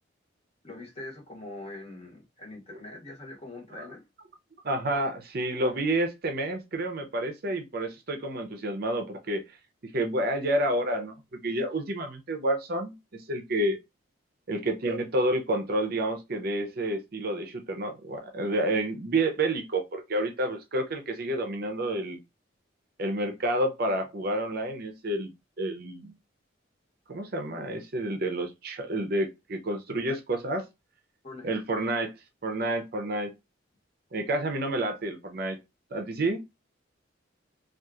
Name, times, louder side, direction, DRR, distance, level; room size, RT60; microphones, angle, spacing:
voice 1, 0.6-4.0 31.2-31.5, left 2 dB, 35° left, 1.0 m, -43 dB
voice 2, 4.6-9.4 9.8-13.8 14.5-22.2 23.0-25.3 25.6-26.1 27.1-30.6 31.4-32.1 32.4-33.3 34.1-35.6 35.9-36.4, right 1 dB, 50° right, 0.5 m, -29 dB
2.8 x 2.4 x 2.3 m
head